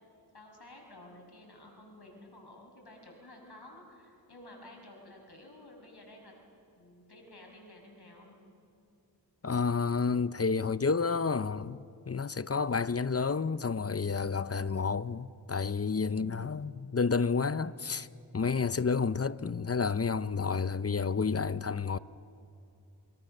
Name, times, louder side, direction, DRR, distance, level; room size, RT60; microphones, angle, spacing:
voice 1, 0.3-6.3 6.8-8.4 15.9-16.4, left 1 dB, 65° left, 5.9 m, -52 dB
voice 2, 9.4-18.1 18.3-22.0, left 5 dB, 35° left, 0.6 m, -30 dB
27.5 x 23.5 x 6.7 m
wide cardioid pair, 45°, 43 cm